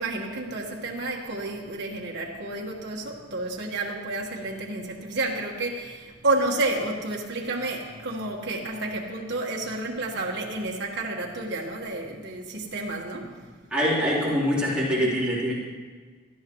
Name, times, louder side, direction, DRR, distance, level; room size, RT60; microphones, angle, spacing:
voice 1, 0.0-13.4, right 2 dB, 55° right, -1 dB, 1.5 m, -30 dB
voice 2, 13.7-15.5, equal, 5° right, -9 dB, 3.7 m, -24 dB
17.5 x 12.5 x 3.1 m, 1.5 s
head